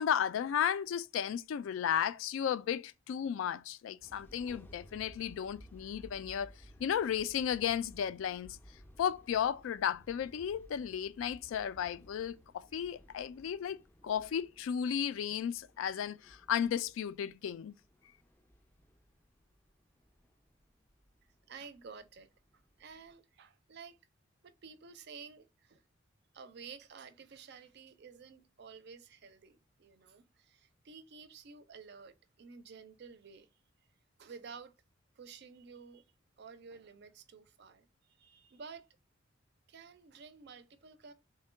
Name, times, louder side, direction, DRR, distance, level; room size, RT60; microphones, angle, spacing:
voice 1, 0.0-6.5 6.8-8.6 9.0-13.8 14.0-17.7, left 8 dB, 80° left, 0.3 m, -34 dB
sound 1, 4.0-23.1, equal, 10° left, 0.4 m, -59 dB
voice 2, 21.5-22.3 22.8-24.0 24.4-25.8 26.3-33.5 34.2-34.8 35.2-36.0 36.4-38.9 39.7-41.1, right 5 dB, 55° right, 0.4 m, -52 dB
3.6 x 2.2 x 4.3 m
head